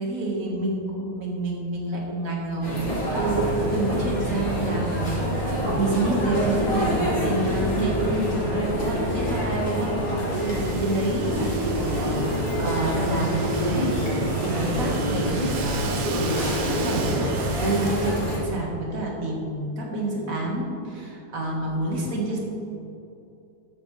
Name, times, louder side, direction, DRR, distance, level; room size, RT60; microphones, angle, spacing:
voice 1, 0.0-17.3 17.5-22.4, right 1 dB, 40° right, -2 dB, 2.0 m, -28 dB
sound 1, 2.6-18.4, equal, 40° left, 2.7 m, -26 dB
Domestic sounds home sounds, 10.2-18.5, right 6 dB, 65° right, 1.4 m, -38 dB
12.5 x 8.5 x 3.3 m, 2.8 s
omnidirectional pair, 2.4 m